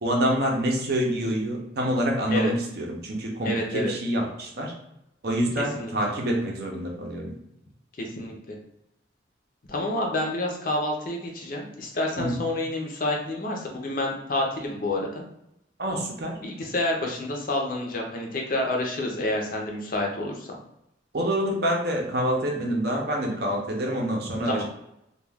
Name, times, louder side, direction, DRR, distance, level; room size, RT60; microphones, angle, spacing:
voice 1, 0.0-4.7 5.2-7.4 12.2-12.4 15.8-16.4 21.1-24.6, right 1 dB, 55° right, 0 dB, 0.6 m, -26 dB
voice 2, 3.4-3.9 5.6-5.9 8.0-8.5 9.7-15.2 16.4-20.5 24.5-24.6, left 1 dB, 45° left, 0 dB, 0.5 m, -28 dB
2.3 x 2.3 x 3.3 m, 0.82 s
head